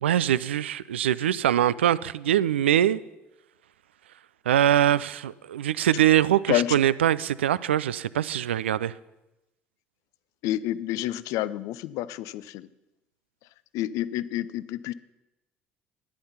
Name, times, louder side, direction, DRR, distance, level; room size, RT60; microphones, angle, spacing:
voice 1, 0.0-3.0 4.5-8.9, right 11 dB, 85° right, 18 dB, 0.4 m, -23 dB
voice 2, 6.5-6.8 10.4-12.7 13.7-14.9, left 14 dB, 65° left, 17 dB, 0.5 m, -29 dB
11.5 x 10.0 x 5.7 m, 0.96 s
hypercardioid pair, 55°, 6 cm